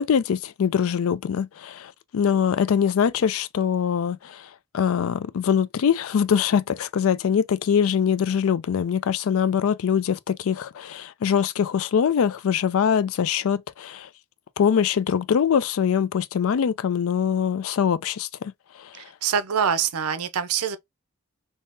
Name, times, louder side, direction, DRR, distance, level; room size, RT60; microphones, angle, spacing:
voice 1, 0.0-4.5 4.7-14.1 14.6-18.3 18.8-19.0, left 7 dB, 65° left, 0.3 m, -23 dB
voice 2, 19.2-20.8, right 7 dB, 85° right, 0.5 m, -24 dB
3.5 x 2.7 x 2.6 m
head